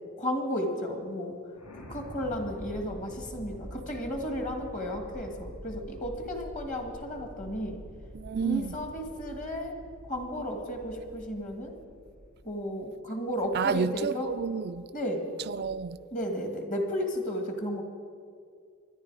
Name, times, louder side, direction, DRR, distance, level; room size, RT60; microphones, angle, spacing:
voice 1, 0.2-1.4 1.7-7.8 8.4-9.8 10.1-11.7 12.4-14.3 14.9-15.3 16.1-17.8, equal, 35° left, 1.9 m, -33 dB
sound 1, 1.5-12.6, equal, 75° left, 2.3 m, -46 dB
voice 2, 8.1-8.8 13.5-14.9 15.5-16.0, right 6 dB, 45° right, 0.4 m, -30 dB
24.0 x 10.5 x 4.8 m
head